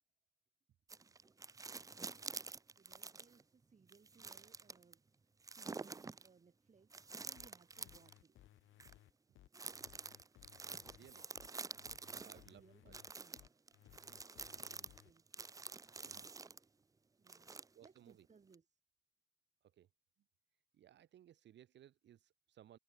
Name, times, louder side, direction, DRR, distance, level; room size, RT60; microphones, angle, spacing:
sound 1, 0.9-3.4 3.9-4.9 5.4-6.3 6.9-8.2 8.8-8.9 9.5-12.5 12.9-16.6 17.3-18.0 18.5-18.6, right 4 dB, 15° right, 0.4 m, -49 dB
voice 1, 2.8-8.4 11.9-13.4 13.8-15.3 17.2-18.8, right 5 dB, 35° right, 6.0 m, -68 dB
sound 2, 7.4-15.1, left 13 dB, 75° left, 1.3 m, -63 dB
voice 2, 10.9-11.2 12.1-12.9 16.0-16.3 17.7-18.3 19.7-19.9 20.7-22.8, right 11 dB, 65° right, 1.0 m, -62 dB
open air
cardioid pair, 90°, 20 cm